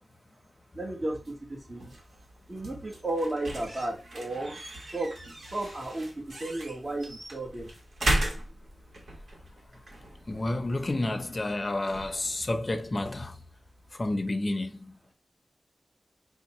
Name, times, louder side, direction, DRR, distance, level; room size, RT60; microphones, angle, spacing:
voice 1, 0.7-2.0 2.5-4.6 4.9-5.2 5.5-7.7, right 2 dB, 40° right, 1.2 m, -34 dB
sound 1, 1.2-13.9, right 1 dB, 85° right, 1.0 m, -37 dB
voice 2, 10.3-13.3 14.0-14.7, left 2 dB, 40° left, 0.6 m, -30 dB
5.2 x 2.1 x 3.0 m
wide cardioid pair, 70°, 0 cm